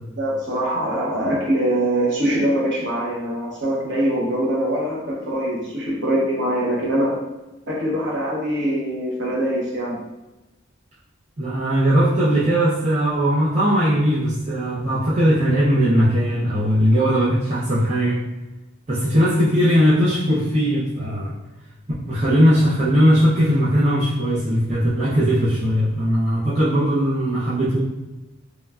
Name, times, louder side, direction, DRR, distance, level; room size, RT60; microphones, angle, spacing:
voice 1, 0.2-7.2 7.7-10.0, right 1 dB, 60° right, -5 dB, 0.8 m, -23 dB
voice 2, 11.4-18.2 18.9-21.3 22.1-27.8, equal, 35° right, -10 dB, 0.5 m, -19 dB
3.0 x 2.2 x 2.3 m, 1.1 s
head